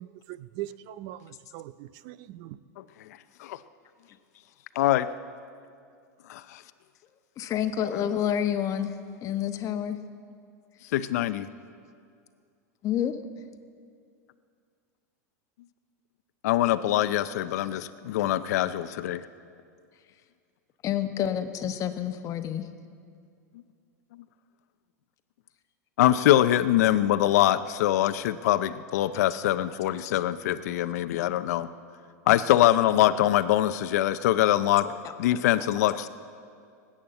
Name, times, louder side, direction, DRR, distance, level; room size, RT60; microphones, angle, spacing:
voice 1, 0.0-2.6, right 14 dB, 55° right, 17 dB, 0.5 m, -41 dB
voice 2, 4.8-5.1 6.3-6.6 10.9-11.5 16.4-19.2 26.0-31.7 32.3-34.9 35.2-36.1, left 13 dB, 75° left, 12 dB, 0.6 m, -23 dB
voice 3, 7.4-8.9 9.2-10.0 12.8-13.2 20.8-22.7 34.8-35.1 35.6-35.7, left 10 dB, 40° left, 8 dB, 1.1 m, -29 dB
19.0 x 8.6 x 7.7 m, 2.3 s
hypercardioid pair, 115°, 9 cm